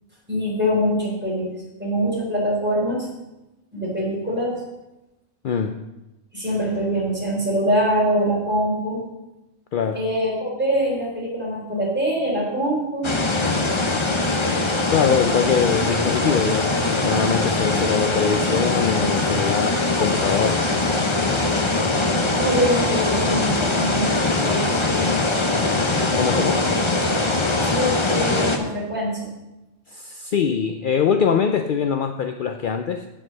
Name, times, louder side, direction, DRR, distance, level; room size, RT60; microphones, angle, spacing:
voice 1, 0.3-1.5 1.8-3.0 3.7-4.6 6.3-9.0 9.9-13.1 22.3-25.3 27.7-29.3, equal, 5° right, -5 dB, 3.7 m, -24 dB
voice 2, 5.4-5.8 9.7-10.0 14.9-20.6 26.2-26.6 29.9-33.1, left 7 dB, 60° left, 7 dB, 0.5 m, -23 dB
sound 1, 13.0-28.6, left 2 dB, 25° left, 0.8 m, -22 dB
8.1 x 7.9 x 6.3 m, 0.99 s
omnidirectional pair, 1.4 m